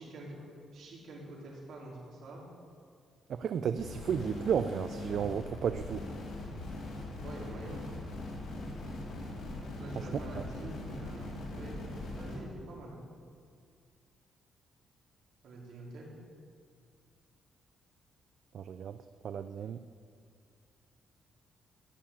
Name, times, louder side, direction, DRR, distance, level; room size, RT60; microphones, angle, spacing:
voice 1, 0.0-2.4 7.2-7.9 9.8-13.0 15.4-16.1, right 1 dB, 75° right, -3 dB, 4.0 m, -46 dB
voice 2, 3.3-6.0 10.0-10.1 18.5-19.0 19.2-19.8, right 7 dB, 60° right, 10 dB, 0.4 m, -33 dB
sound 1, 3.8-12.4, left 2 dB, 80° left, 3.9 m, -41 dB
14.5 x 7.2 x 8.8 m, 2.1 s
cardioid pair, 135°, 0 cm